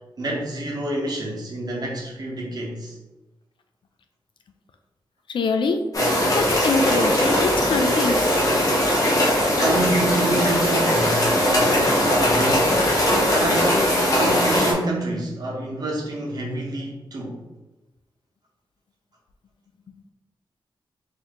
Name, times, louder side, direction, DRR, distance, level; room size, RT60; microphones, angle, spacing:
voice 1, 0.2-3.0 9.5-12.8 13.3-17.4, right 2 dB, 45° right, -1 dB, 0.9 m, -28 dB
voice 2, 5.3-5.8 6.3-8.4, left 4 dB, 65° left, 6 dB, 0.4 m, -24 dB
sound 1, 5.9-14.7, equal, 40° left, 1.0 m, -20 dB
4.1 x 2.7 x 2.9 m, 1.0 s
wide cardioid pair, 155°, 9 cm